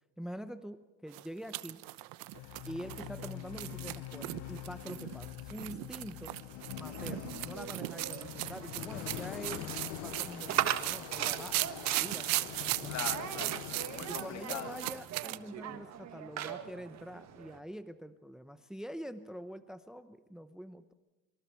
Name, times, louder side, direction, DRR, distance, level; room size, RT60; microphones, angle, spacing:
voice 1, 0.2-1.8 2.7-6.4 6.7-12.9 14.1-20.9, equal, ahead, 11 dB, 0.8 m, -45 dB
sound 1, 1.1-15.4, right 20 dB, 75° right, 1.0 m, -38 dB
sound 2, 2.3-15.0, left 18 dB, 85° left, 0.7 m, -45 dB
sound 3, 6.6-17.6, right 10 dB, 50° right, 1.8 m, -40 dB
voice 2, 12.9-14.7, left 9 dB, 50° left, 9 dB, 1.9 m, -42 dB
26.0 x 25.5 x 4.6 m, 1.1 s
cardioid pair, 125°, 34 cm